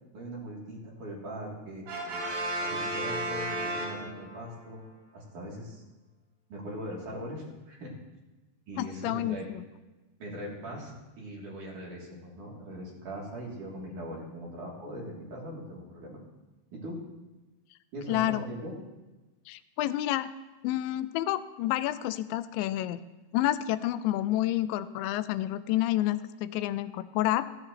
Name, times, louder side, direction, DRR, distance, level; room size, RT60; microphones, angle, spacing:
voice 1, 0.1-1.9 2.6-4.8 5.1-5.8 6.5-7.9 8.7-9.5 10.2-16.2 16.7-17.0 17.9-18.7, equal, 50° right, -4 dB, 4.4 m, -40 dB
Brass instrument, 1.9-4.5, right 1 dB, 75° right, 4.7 m, -33 dB
voice 2, 8.8-9.6 18.1-18.4 19.5-20.3 20.6-23.0 23.3-27.5, left 14 dB, 90° left, 13 dB, 2.9 m, -29 dB
17.0 x 15.5 x 3.2 m, 1.1 s
omnidirectional pair, 5.1 m